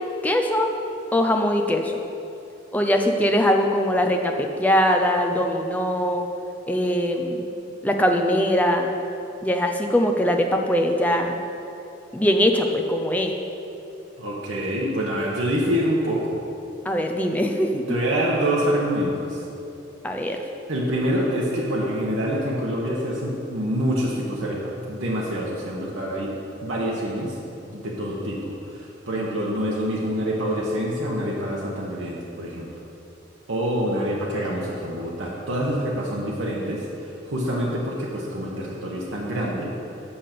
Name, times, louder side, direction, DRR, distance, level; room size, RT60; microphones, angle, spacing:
voice 1, 0.2-0.7 1.1-2.0 2.7-6.3 6.7-7.5 7.8-8.9 9.4-11.4 12.1-13.3 16.8-17.8 20.0-20.4, equal, 10° left, 3 dB, 0.6 m, -21 dB
voice 2, 14.2-16.4 17.9-19.4 20.7-26.3 26.6-27.4 27.7-32.7 33.5-39.7, equal, 80° right, -4 dB, 1.2 m, -26 dB
8.5 x 5.8 x 6.7 m, 2.9 s
head